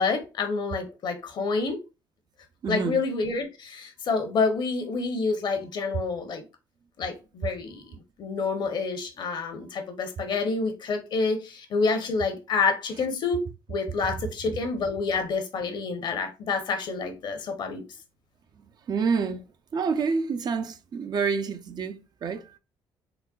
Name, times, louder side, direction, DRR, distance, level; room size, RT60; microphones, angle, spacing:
voice 1, 0.0-1.8 2.7-6.4 7.0-17.8, left 4 dB, 60° left, 0.8 m, -28 dB
voice 2, 2.6-3.0 18.9-19.4 19.7-22.6, right 5 dB, 50° right, 0.4 m, -28 dB
4.0 x 2.1 x 2.3 m
supercardioid pair, 75°, 9 cm